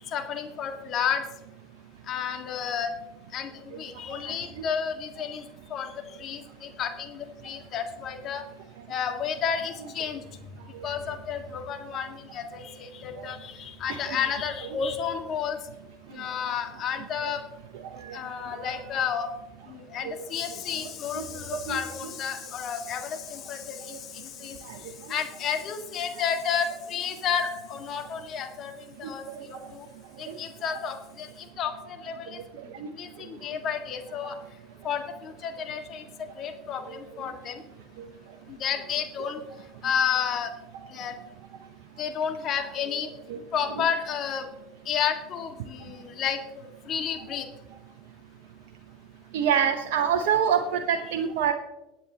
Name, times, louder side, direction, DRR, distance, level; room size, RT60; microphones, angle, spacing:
voice 1, 0.1-1.2 2.1-2.9 3.3-5.4 5.7-5.9 6.2-8.4 8.9-10.2 10.8-15.6 16.1-17.4 18.1-19.3 19.7-24.6 25.1-28.7 29.0-29.8 30.2-32.4 33.0-34.4 34.8-36.0 36.4-37.6 38.5-39.4 39.8-40.5 40.9-41.1 42.0-43.1 43.5-44.5 44.8-46.4 46.9-47.5, left 7 dB, 50° left, 6 dB, 1.7 m, -31 dB
voice 2, 49.3-51.5, right 8 dB, 75° right, 5 dB, 0.8 m, -25 dB
21.5 x 8.7 x 2.9 m, 1.1 s
hypercardioid pair, 85°, 0 cm